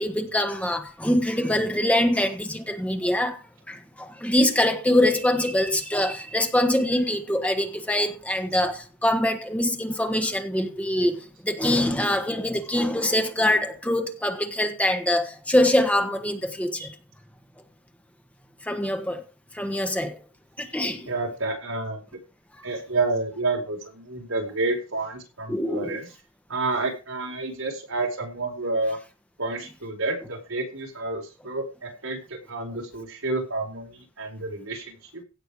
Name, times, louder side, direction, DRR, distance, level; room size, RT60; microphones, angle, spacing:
voice 1, 0.0-3.4 3.7-16.9 18.7-19.2 19.5-20.2 20.6-21.1 25.5-25.9, left 1 dB, 5° left, 1.4 m, -24 dB
voice 2, 21.1-22.0 22.6-26.1 26.5-29.0 29.4-35.2, right 3 dB, 85° right, 4.6 m, -29 dB
16.5 x 6.7 x 4.8 m
head